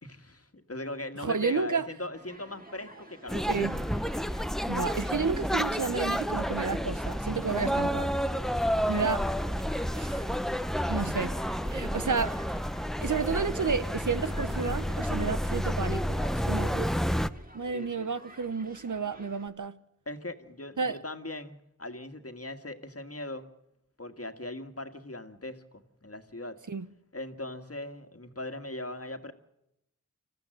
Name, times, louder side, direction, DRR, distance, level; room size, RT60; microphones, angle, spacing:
voice 1, 0.0-3.5 17.7-18.1 20.1-23.5 24.0-26.6 27.1-29.3, left 2 dB, 45° left, 1.9 m, -40 dB
voice 2, 1.2-1.9 3.3-3.9 4.7-8.1 8.9-9.3 9.9-10.2 10.9-11.4 11.6-12.4 13.0-17.0 17.5-19.8 20.8-21.0 26.7-26.9, right 5 dB, 65° right, 0.9 m, -31 dB
Human group actions, 2.1-19.5, right 1 dB, 25° right, 3.0 m, -51 dB
sound 1, 3.3-17.3, equal, ahead, 0.7 m, -30 dB
26.0 x 15.0 x 7.8 m
wide cardioid pair, 50°, 33 cm